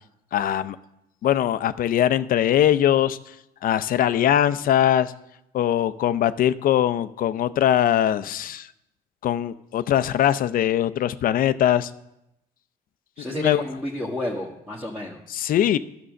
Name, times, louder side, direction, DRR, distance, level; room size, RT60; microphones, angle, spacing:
voice 1, 0.3-0.8 1.2-3.2 3.6-5.1 5.5-8.7 9.2-11.9 13.3-13.6 15.3-15.8, left 11 dB, 55° left, 13 dB, 0.5 m, -21 dB
voice 2, 13.2-15.2, left 1 dB, 5° right, -4 dB, 1.4 m, -30 dB
11.0 x 6.1 x 6.5 m, 0.86 s
cardioid pair, 110°, 17 cm